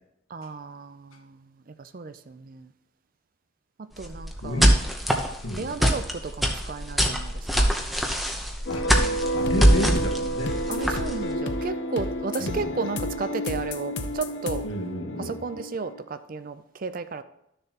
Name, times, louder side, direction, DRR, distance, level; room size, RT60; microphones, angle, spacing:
voice 1, 0.3-2.7 3.8-4.7 5.6-7.7 10.7-14.7 15.2-17.2, right 4 dB, 40° right, 11 dB, 0.4 m, -34 dB
sound 1, 4.0-11.3, equal, ahead, 0.8 m, -23 dB
voice 2, 4.4-4.8 5.4-5.8 8.7-8.9 9.3-10.6 12.4-12.7 14.6-15.4, left 1 dB, 80° left, 2 dB, 1.5 m, -31 dB
sound 2, 8.7-16.0, equal, 55° left, 0.6 m, -30 dB
12.5 x 6.8 x 2.9 m, 0.80 s
head